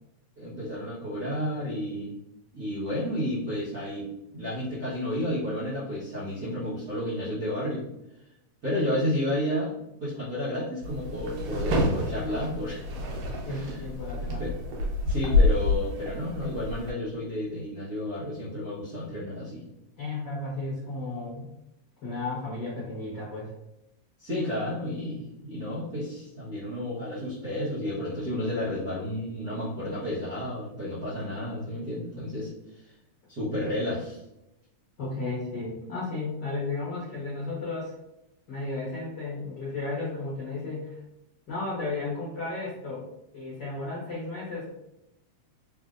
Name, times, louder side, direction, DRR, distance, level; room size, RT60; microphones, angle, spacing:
voice 1, 0.4-2.1 2.5-4.1 4.3-7.8 8.6-9.7 10.0-12.8 13.5-13.9 14.4-14.5 15.0-19.6 24.2-32.5 33.3-34.2, left 1 dB, 50° right, -11 dB, 1.1 m, -31 dB
sound 1, 10.8-16.9, left 2 dB, 70° right, 1.7 m, -28 dB
voice 2, 13.5-14.5 20.0-21.5 22.0-23.5 33.7-33.8 35.0-37.9 38.5-41.0 41.5-43.0 43.3-44.8, left 3 dB, 55° left, -7 dB, 1.3 m, -34 dB
4.3 x 3.4 x 2.5 m, 0.87 s
omnidirectional pair, 3.3 m